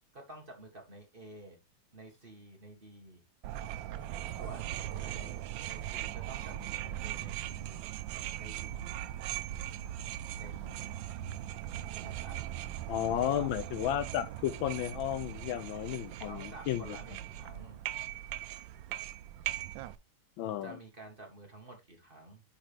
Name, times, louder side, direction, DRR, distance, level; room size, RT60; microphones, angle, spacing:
voice 1, 0.1-1.6 1.9-3.2 4.3-4.7 5.0-7.8 8.4-9.0 10.4-10.9 11.9-12.4 13.2-13.6 16.3-17.8 20.6-22.4, right 2 dB, 30° right, 1.6 m, -50 dB
sound 1, 3.4-20.0, right 12 dB, 75° right, 1.3 m, -39 dB
voice 2, 12.9-17.0 20.4-20.8, left 11 dB, 80° left, 1.4 m, -33 dB
10.0 x 3.8 x 3.2 m
omnidirectional pair, 2.2 m